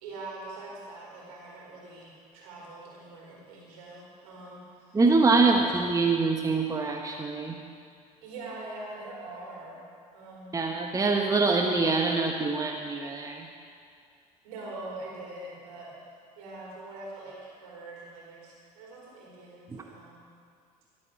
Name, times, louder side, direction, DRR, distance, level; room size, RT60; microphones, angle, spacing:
voice 1, 0.0-5.0 5.4-5.7 8.2-9.8 10.1-10.5 14.4-15.9 16.4-20.2, right 2 dB, 65° right, -4 dB, 4.5 m, -43 dB
voice 2, 4.9-7.6 10.5-13.5 19.7-19.8, right 3 dB, 15° right, 2 dB, 1.2 m, -24 dB
22.5 x 8.9 x 4.9 m, 2.3 s
figure-of-eight pair, 60°, 20 cm